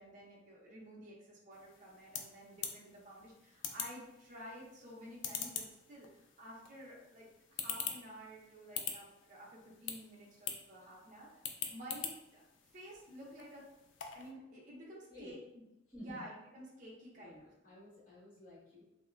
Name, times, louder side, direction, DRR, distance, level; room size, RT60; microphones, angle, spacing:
voice 1, 0.0-11.3 11.7-12.4 12.7-13.7 14.1-15.4 16.0-17.5, equal, 45° right, -4 dB, 0.6 m, -52 dB
sound 1, 1.5-14.3, left 7 dB, 85° left, 0.3 m, -45 dB
voice 2, 15.9-16.2 17.1-18.8, left 1 dB, 45° left, -9 dB, 1.3 m, -52 dB
2.9 x 2.1 x 2.4 m, 0.90 s
head